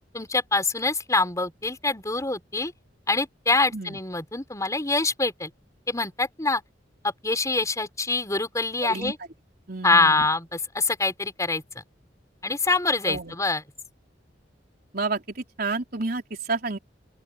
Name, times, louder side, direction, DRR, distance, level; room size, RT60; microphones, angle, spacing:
voice 1, 0.1-2.7 3.1-5.5 5.9-6.6 7.0-9.2 9.8-11.6 12.4-13.6, left 3 dB, 20° left, 4.5 m, -25 dB
voice 2, 8.8-9.1 9.7-10.3 13.1-13.4 14.9-16.8, right 3 dB, 55° right, 4.0 m, -30 dB
open air
head